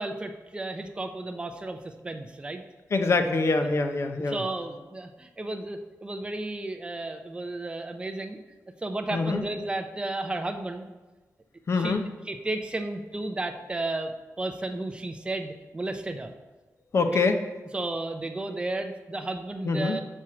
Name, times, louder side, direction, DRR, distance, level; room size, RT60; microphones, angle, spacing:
voice 1, 0.0-2.6 4.3-8.4 8.8-10.9 11.7-12.0 12.2-16.3 17.1-17.2 17.7-20.0, right 2 dB, 15° right, 5 dB, 0.5 m, -33 dB
voice 2, 2.9-4.4 9.1-9.4 11.7-12.1 16.9-17.4 19.6-20.0, left 3 dB, 50° left, 6 dB, 0.6 m, -24 dB
6.2 x 4.4 x 5.9 m, 1.2 s
wide cardioid pair, 175°, 6 cm